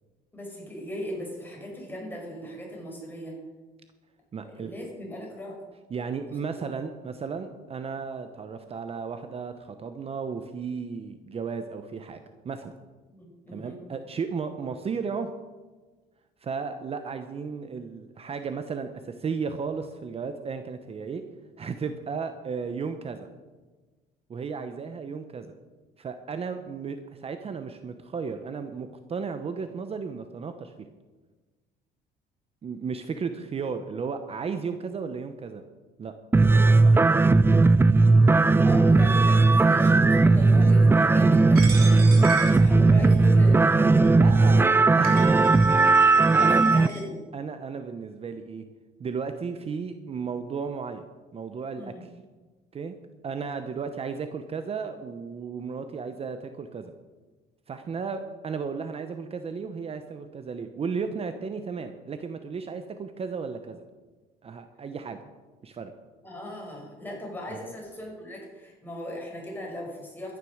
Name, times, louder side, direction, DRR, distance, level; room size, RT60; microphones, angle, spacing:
voice 1, 0.3-3.4 4.4-5.7 6.3-6.4 13.1-13.8 38.6-44.0 44.3-44.6 46.1-47.2 51.8-52.0 66.2-70.4, left 1 dB, 10° left, -2 dB, 5.8 m, -38 dB
voice 2, 4.3-4.7 5.9-12.7 13.5-15.3 16.4-21.2 21.6-23.3 24.3-25.5 26.0-30.7 32.6-35.6 36.0-36.1 36.8-37.4 44.1-44.7 45.0-45.9 46.4-46.6 47.3-48.6 49.0-51.0 51.3-52.1 52.7-53.0 53.2-56.9 57.7-63.8 64.4-65.2 65.6-65.9 67.5-67.7, right 5 dB, 35° right, 8 dB, 0.9 m, -34 dB
sound 1, 36.3-46.9, right 3 dB, 15° right, 0.4 m, -18 dB
Coin (dropping), 41.6-43.3 44.0-44.1 44.8-44.9 45.0-47.0, right 5 dB, 65° right, 3.9 m, -38 dB
13.0 x 10.5 x 6.4 m, 1.3 s
cardioid pair, 110°, 17 cm